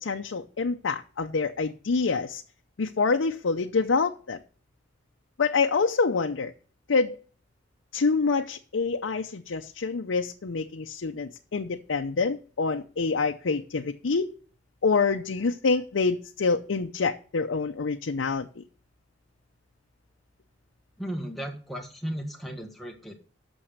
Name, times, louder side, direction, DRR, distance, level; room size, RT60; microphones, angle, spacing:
voice 1, 0.0-2.4 2.8-4.4 5.4-6.5 6.9-7.2 7.9-14.3 14.8-18.6, left 4 dB, 85° left, 4 dB, 0.6 m, -26 dB
voice 2, 21.0-23.1, equal, ahead, 1 dB, 1.5 m, -35 dB
8.9 x 6.3 x 6.5 m, 0.40 s
head